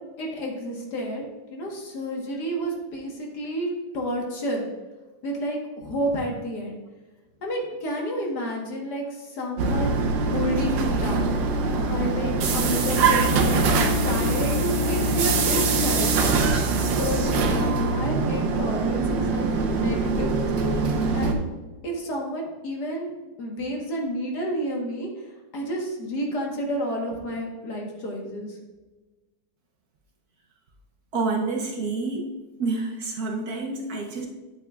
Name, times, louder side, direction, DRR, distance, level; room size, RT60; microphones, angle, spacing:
voice 1, 0.2-1.2 1.5-3.7 3.9-4.7 5.2-6.8 7.4-11.4 11.8-13.7 14.0-16.1 16.9-20.8 21.1-21.4 21.8-23.1 23.4-25.1 25.5-28.6, equal, 65° left, 0 dB, 1.9 m, -30 dB
sound 1, 9.6-21.3, right 3 dB, 80° right, 1.5 m, -23 dB
voice 2, 31.1-32.3 32.6-34.3, right 3 dB, 60° right, 1 dB, 1.2 m, -28 dB
9.3 x 7.8 x 2.3 m, 1.2 s
omnidirectional pair, 2.0 m